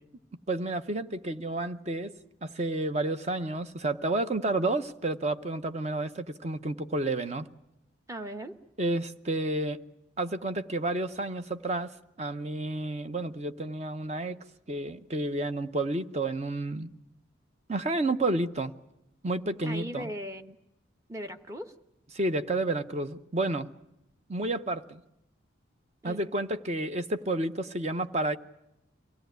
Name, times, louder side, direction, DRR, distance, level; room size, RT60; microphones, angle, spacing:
voice 1, 0.5-2.2 2.4-7.5 8.8-9.8 10.2-16.9 17.7-18.7 19.2-20.1 22.1-23.7 24.3-25.0 26.0-28.4, right 2 dB, 35° right, 0.8 m, -30 dB
voice 2, 8.1-8.6 19.6-20.6 21.1-21.7 26.0-26.2, equal, 15° right, 1.0 m, -38 dB
24.0 x 17.0 x 9.3 m
head